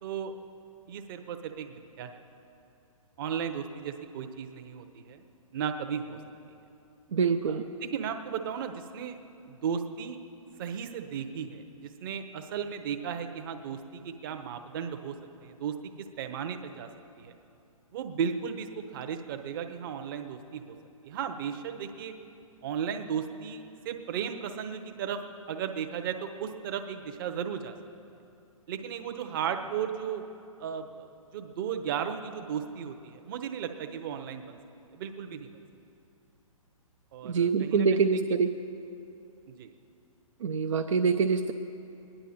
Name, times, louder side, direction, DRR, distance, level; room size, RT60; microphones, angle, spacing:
voice 1, 0.0-0.3 0.9-2.2 3.2-5.2 5.5-6.2 7.5-7.6 7.9-9.2 9.5-10.2 10.6-15.1 15.4-16.9 17.1-17.3 17.9-20.8 21.0-22.1 22.6-25.2 25.5-27.7 28.7-30.2 30.6-34.6 34.9-35.6 37.1-38.1 39.5-39.7, right 7 dB, 40° right, 7 dB, 1.0 m, -35 dB
voice 2, 7.1-7.6 37.2-38.5 40.4-41.5, right 5 dB, 60° right, 3 dB, 0.6 m, -25 dB
22.5 x 10.0 x 4.2 m, 2.7 s
figure-of-eight pair, 120°, 18 cm